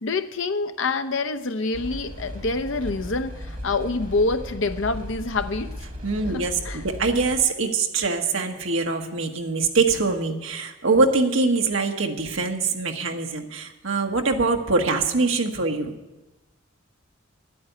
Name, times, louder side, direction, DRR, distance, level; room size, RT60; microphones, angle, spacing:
voice 1, 0.0-5.7 6.3-6.8, left 3 dB, 65° left, 9 dB, 0.8 m, -26 dB
sound 1, 1.7-7.4, equal, 40° right, 2.3 m, -36 dB
voice 2, 6.0-16.0, right 3 dB, 70° right, 3 dB, 1.4 m, -23 dB
11.0 x 8.7 x 9.2 m, 1.1 s
head